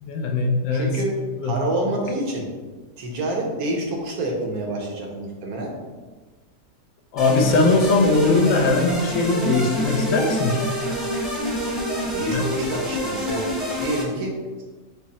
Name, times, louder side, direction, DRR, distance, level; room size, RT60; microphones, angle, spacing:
voice 1, 0.0-0.9 1.4-1.5 7.1-10.7 12.3-12.4, left 3 dB, 70° left, 2 dB, 0.9 m, -20 dB
voice 2, 0.7-2.5 3.0-5.7 12.0-13.5 13.8-14.6, right 1 dB, 80° right, -1 dB, 1.4 m, -28 dB
sound 1, 7.2-14.0, equal, ahead, 0.7 m, -27 dB
5.5 x 2.1 x 4.1 m, 1.3 s
omnidirectional pair, 1.5 m